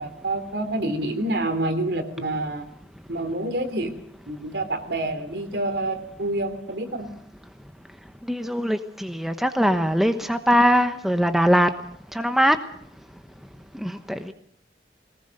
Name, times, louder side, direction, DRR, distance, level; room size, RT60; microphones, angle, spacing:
voice 1, 0.0-2.7 3.1-3.9 4.3-7.1, right 1 dB, 70° right, 8 dB, 3.5 m, -27 dB
voice 2, 8.3-11.7 12.1-12.6 13.8-14.3, equal, ahead, 7 dB, 1.0 m, -21 dB
22.0 x 19.0 x 6.7 m, 0.67 s
head